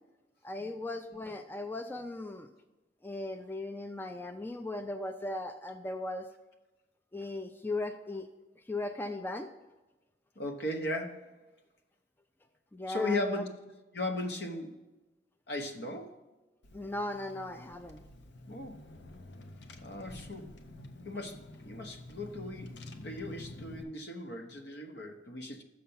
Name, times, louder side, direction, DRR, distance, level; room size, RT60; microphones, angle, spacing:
voice 1, 0.4-2.5 3.0-6.3 7.1-8.3 8.7-9.5 12.7-13.4 16.7-18.0, left 2 dB, 10° left, 7 dB, 0.3 m, -37 dB
voice 2, 10.4-11.3 12.9-13.5 13.9-14.8 15.5-16.1 18.5-18.8 19.8-20.5 21.0-22.7 23.0-25.6, left 2 dB, 65° left, 5 dB, 1.0 m, -37 dB
Car / Engine, 16.6-23.8, left 2 dB, 90° left, 0.7 m, -49 dB
6.6 x 5.7 x 5.5 m, 1.1 s
head